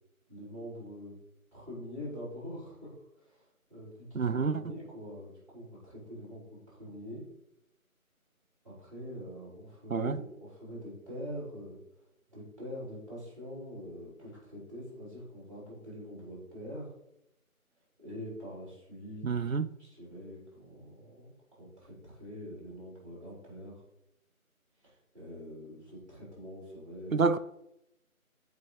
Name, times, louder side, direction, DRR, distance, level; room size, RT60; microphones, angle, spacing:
voice 1, 0.3-1.1 1.5-7.2 8.6-11.8 12.3-16.9 18.0-19.2 19.8-23.8 24.8-27.3, equal, 25° right, 3.3 m, -44 dB
voice 2, 4.1-4.6 9.9-10.2 19.2-19.7 27.1-27.4, right 4 dB, 70° right, 0.5 m, -28 dB
11.5 x 4.8 x 3.2 m
figure-of-eight pair, 175°, 43 cm